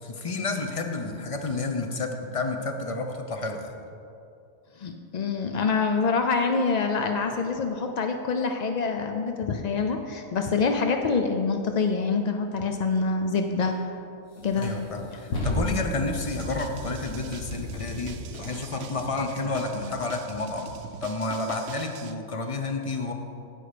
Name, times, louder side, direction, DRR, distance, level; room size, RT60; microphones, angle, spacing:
voice 1, 0.0-3.7 14.6-20.7 21.0-23.1, left 3 dB, 30° left, 5 dB, 0.7 m, -30 dB
voice 2, 4.8-13.7 14.4-14.7, left 4 dB, 70° left, 5 dB, 0.4 m, -26 dB
sound 1, 13.6-13.7 14.3-18.6, left 1 dB, 85° left, 2.1 m, -34 dB
sound 2, 16.2-22.1, right 8 dB, 70° right, 0.9 m, -43 dB
9.7 x 8.5 x 5.0 m, 2.6 s
omnidirectional pair, 1.4 m